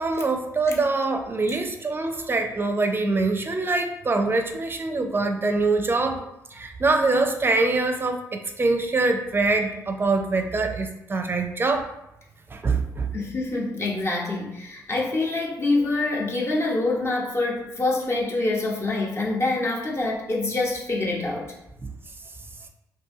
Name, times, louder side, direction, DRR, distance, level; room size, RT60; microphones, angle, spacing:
voice 1, 0.0-6.2 6.5-11.9 12.5-13.1, right 3 dB, 30° right, 5 dB, 0.5 m, -24 dB
voice 2, 13.1-21.5, left 2 dB, 35° left, -3 dB, 1.0 m, -26 dB
2.7 x 2.6 x 3.6 m, 0.86 s
supercardioid pair, 65°, 8 cm